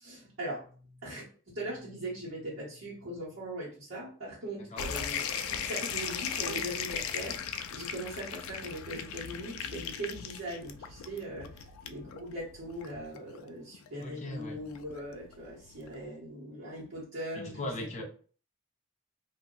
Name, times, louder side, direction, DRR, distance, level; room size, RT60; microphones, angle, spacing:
voice 1, 0.0-17.7 18.0-18.1, right 1 dB, 65° right, -9 dB, 1.2 m, -40 dB
sound 1, 4.8-16.0, left 7 dB, 90° left, 0.3 m, -38 dB
voice 2, 14.0-14.6 17.4-18.0, left 2 dB, 35° left, 2 dB, 0.6 m, -38 dB
2.6 x 2.1 x 3.8 m, 0.41 s
head